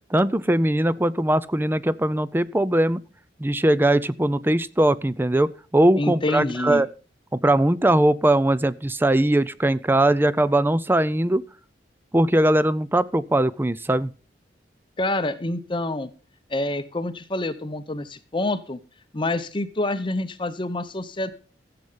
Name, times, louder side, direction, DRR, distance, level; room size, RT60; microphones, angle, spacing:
voice 1, 0.1-3.0 3.4-6.9 7.3-11.4 12.1-14.1, right 1 dB, 10° right, 0.5 m, -20 dB
voice 2, 6.0-6.8 15.0-16.1 16.5-18.8 19.1-21.3, left 2 dB, 30° left, 0.7 m, -27 dB
14.0 x 7.9 x 5.5 m
head